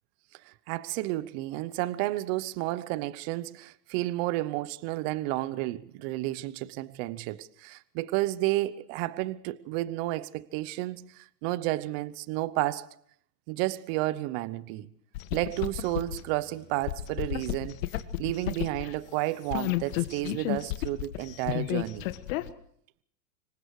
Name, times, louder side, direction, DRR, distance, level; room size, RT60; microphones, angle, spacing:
voice 1, 0.4-12.9 13.5-14.9 15.3-17.8 18.2-22.1, right 17 dB, 35° right, 0.9 m, -31 dB
sound 1, 15.1-19.0 19.5-22.5, left 15 dB, 50° left, 1.7 m, -33 dB
26.5 x 22.5 x 4.8 m
hypercardioid pair, 125°, 50 cm